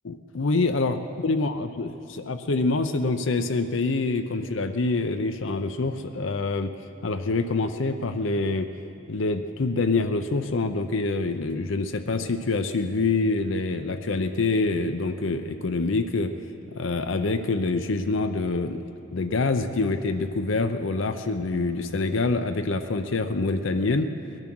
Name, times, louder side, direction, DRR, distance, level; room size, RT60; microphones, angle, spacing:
voice 1, 0.0-1.0 1.2-6.7 7.0-8.7 9.1-16.3 16.7-18.8 19.1-24.1, left 3 dB, 70° left, 7 dB, 0.6 m, -26 dB
20.0 x 11.0 x 6.1 m, 2.6 s
head